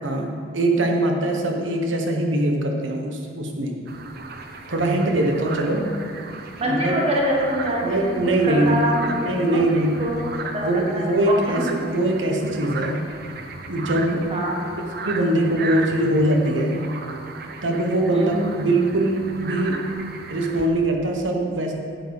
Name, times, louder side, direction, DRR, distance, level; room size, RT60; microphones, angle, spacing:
voice 1, 0.0-3.8 4.7-5.8 6.6-6.9 7.8-8.8 9.2-10.1 10.6-13.0 13.7-14.3 15.0-16.8 17.6-19.9 20.3-21.7, right 1 dB, 90° right, 2 dB, 1.2 m, -22 dB
voice 2, 1.4-2.0 5.6-5.9 6.5-8.1 8.4-9.6 10.0-11.6 14.3-14.6 18.1-18.4, equal, 35° right, -2 dB, 1.4 m, -26 dB
sound 1, 3.9-20.7, right 4 dB, 55° right, 0.7 m, -36 dB
8.9 x 8.0 x 4.9 m, 2.4 s
head